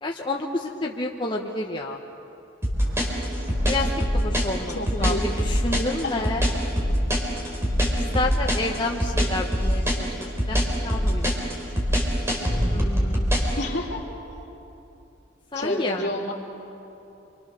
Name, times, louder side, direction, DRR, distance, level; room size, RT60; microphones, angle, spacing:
voice 1, 0.0-2.0 3.7-3.9 4.1-6.4 8.0-10.6 10.8-11.6 12.7-13.3 15.5-16.1, left 2 dB, 25° left, 0 dB, 1.0 m, -29 dB
sound 1, 2.6-13.5, equal, 15° right, 4.0 m, -23 dB
sound 2, 2.8-5.9 6.1-8.7, equal, 70° right, 2.7 m, -38 dB
voice 2, 4.7-5.2 6.0-6.3 13.6-14.0 15.5-16.3, left 1 dB, 60° left, -1 dB, 3.2 m, -29 dB
27.5 x 25.0 x 6.7 m, 2.9 s
head